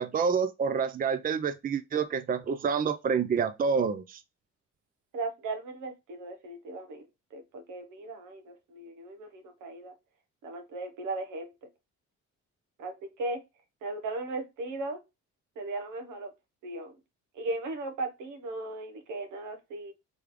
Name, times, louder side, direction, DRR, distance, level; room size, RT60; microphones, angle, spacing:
voice 1, 0.0-4.2, right 6 dB, 30° right, 0.5 m, -28 dB
voice 2, 5.1-7.0 7.3-9.9 10.4-11.5 12.8-13.4 13.8-15.0 15.5-16.3 16.6-16.9 17.3-19.9, right 2 dB, 90° right, 1.2 m, -37 dB
3.4 x 3.3 x 3.6 m
cardioid pair, 90°, 30 cm